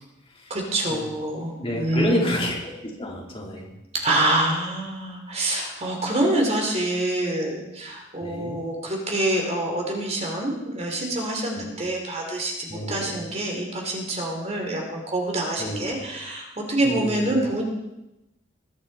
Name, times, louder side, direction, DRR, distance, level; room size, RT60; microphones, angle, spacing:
voice 1, 0.5-2.4 3.9-17.6, right 1 dB, 35° right, 0 dB, 3.2 m, -26 dB
voice 2, 1.6-3.7 8.2-8.6 11.6-11.7 12.7-13.1 15.6-15.9 16.8-17.3, equal, 30° left, -3 dB, 3.5 m, -29 dB
21.0 x 11.5 x 4.2 m, 0.93 s
head